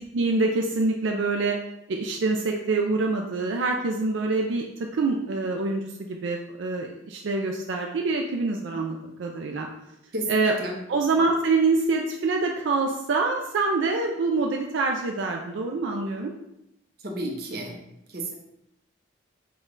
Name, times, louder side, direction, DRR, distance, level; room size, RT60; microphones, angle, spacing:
voice 1, 0.1-1.6 1.9-4.6 4.9-9.7 10.3-10.5 10.9-16.3, right 3 dB, 80° right, 1 dB, 0.4 m, -25 dB
voice 2, 10.1-10.8 17.0-17.8 18.1-18.4, right 1 dB, 55° right, 1 dB, 0.7 m, -32 dB
5.2 x 2.3 x 3.7 m, 0.82 s
head